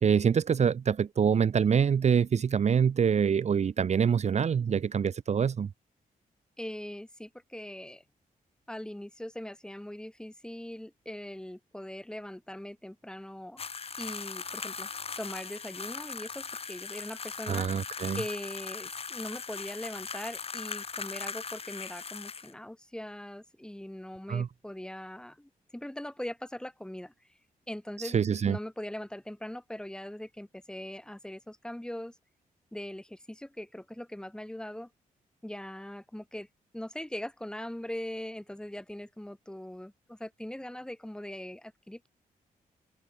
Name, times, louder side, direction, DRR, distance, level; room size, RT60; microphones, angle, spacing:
voice 1, 0.0-5.7 17.5-18.2 24.3-24.5 28.0-28.6, right 7 dB, 50° right, 1.1 m, -25 dB
voice 2, 6.6-8.0 8.7-13.6 14.0-14.9 15.2-17.7 18.1-27.1 27.7-28.2 28.4-32.2 32.7-34.9 35.4-36.5 36.7-42.1, left 1 dB, 5° left, 4.8 m, -41 dB
sound 1, 13.6-22.5, left 5 dB, 40° left, 6.6 m, -39 dB
open air
wide cardioid pair, 130°, 15 cm